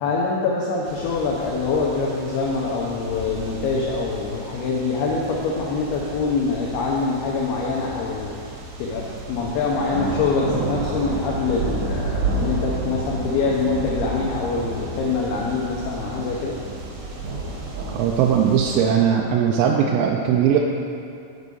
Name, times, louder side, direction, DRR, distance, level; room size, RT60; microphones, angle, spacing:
voice 1, 0.0-8.4 8.8-16.6, left 4 dB, 75° left, -4 dB, 2.4 m, -24 dB
sound 1, 0.8-18.9, right 3 dB, 65° right, 2.1 m, -31 dB
voice 2, 17.9-20.6, right 8 dB, 85° right, 0 dB, 2.9 m, -19 dB
7.2 x 4.9 x 6.8 m, 2.4 s
omnidirectional pair, 5.4 m